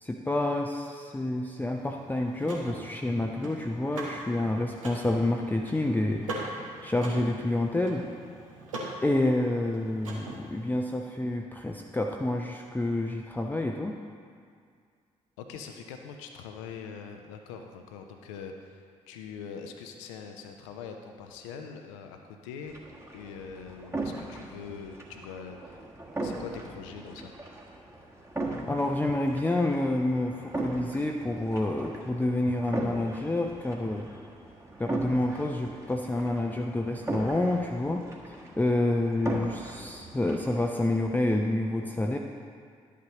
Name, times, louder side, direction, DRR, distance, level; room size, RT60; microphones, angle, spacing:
voice 1, 0.0-8.1 9.0-14.0 28.7-34.1 34.8-38.1 38.6-42.2, left 1 dB, 10° left, 1 dB, 0.6 m, -28 dB
Car / Mechanisms, 1.7-10.7, right 1 dB, 80° right, 1.0 m, -41 dB
voice 2, 15.4-22.7 23.1-25.8 26.2-27.3, left 6 dB, 70° left, 4 dB, 0.6 m, -43 dB
sound 1, 22.7-41.2, right 2 dB, 15° right, 1.4 m, -39 dB
11.5 x 8.3 x 2.9 m, 2.2 s
figure-of-eight pair, 40°, 17 cm